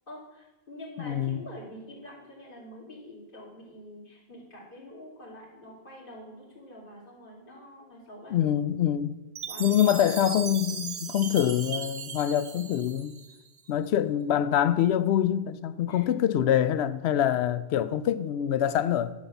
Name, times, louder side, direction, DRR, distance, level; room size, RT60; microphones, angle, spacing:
voice 1, 0.1-8.4 9.5-10.0 15.8-16.0, left 1 dB, 55° left, 3.1 m, -46 dB
voice 2, 1.0-1.4 8.3-9.1 9.6-13.1 13.7-19.1, left 10 dB, 85° left, 0.8 m, -25 dB
Chime, 9.4-13.6, right 7 dB, 50° right, 0.6 m, -38 dB
11.0 x 4.2 x 6.9 m
omnidirectional pair, 1.0 m